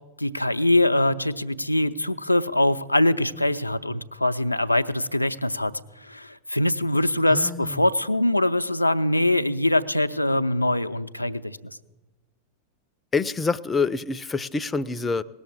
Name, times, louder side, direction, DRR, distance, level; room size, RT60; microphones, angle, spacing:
voice 1, 0.2-5.7 6.0-11.6, left 1 dB, 85° left, 10 dB, 0.5 m, -23 dB
voice 2, 7.3-7.9 13.1-15.2, left 4 dB, 15° left, 15 dB, 0.5 m, -26 dB
18.5 x 7.2 x 9.9 m, 1.1 s
figure-of-eight pair, 90°, 0 cm